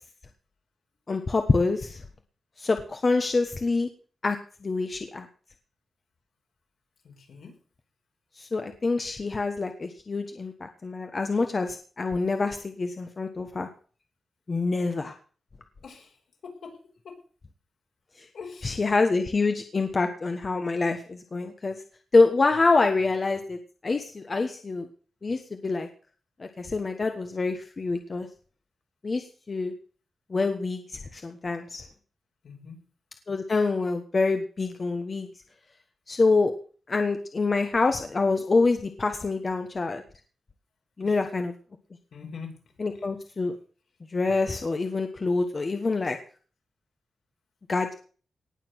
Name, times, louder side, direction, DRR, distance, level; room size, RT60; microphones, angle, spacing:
voice 1, 1.1-2.0 2.6-3.9 4.2-5.3 8.4-13.7 14.5-15.1 18.2-18.3 18.6-21.8 22.1-24.9 25.2-25.9 26.4-28.3 29.0-29.7 30.3-31.8 33.3-35.3 36.1-36.5 36.9-40.0 41.0-41.5 42.8-43.6 44.1-46.2 47.7-47.9, left 3 dB, 30° left, 6 dB, 1.3 m, -26 dB
voice 2, 7.0-7.6 15.8-16.2 16.4-17.2 18.3-18.8 32.4-32.8 41.0-41.2 42.1-42.6, left 5 dB, 70° left, 2 dB, 5.2 m, -43 dB
19.0 x 6.9 x 7.9 m, 0.41 s
wide cardioid pair, 165°, 0 cm